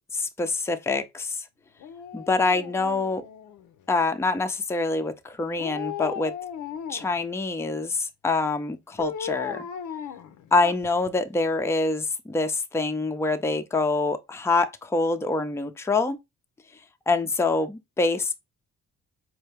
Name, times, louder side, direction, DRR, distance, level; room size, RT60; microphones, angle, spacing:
voice 1, 0.1-1.4 2.1-3.2 3.9-6.3 6.9-9.7 10.5-16.2 17.1-18.3, left 3 dB, 10° left, 0.5 m, -25 dB
Dog, 1.8-3.9 5.5-7.2 9.0-11.1 11.4-11.5, left 8 dB, 75° left, 0.6 m, -36 dB
4.4 x 2.2 x 3.2 m
cardioid pair, 90°, 30 cm